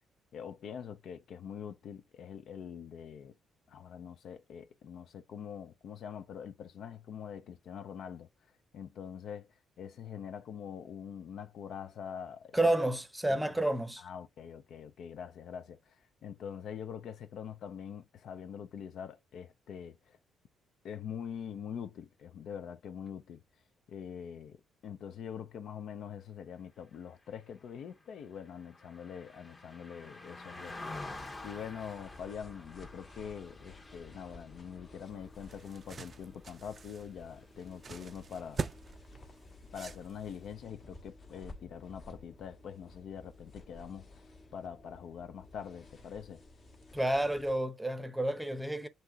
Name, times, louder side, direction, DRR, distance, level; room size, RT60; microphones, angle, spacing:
voice 1, 0.3-3.3 3.7-8.3 8.7-9.5 9.8-12.6 13.3-13.4 14.0-16.0 16.2-20.2 20.8-23.4 23.9-30.8 31.4-38.6 39.7-44.1 44.5-46.4, left 8 dB, 70° left, 0.5 m, -44 dB
voice 2, 12.5-14.0 46.9-48.9, right 1 dB, 5° right, 0.7 m, -30 dB
Car passing by, 27.3-36.8 37.2-37.4, left 2 dB, 25° left, 1.0 m, -49 dB
sound 1, 31.0-47.6, left 2 dB, 50° left, 1.3 m, -54 dB
sound 2, 35.1-40.5, right 5 dB, 40° right, 0.3 m, -44 dB
7.6 x 2.8 x 2.3 m
cardioid pair, 90°, 0 cm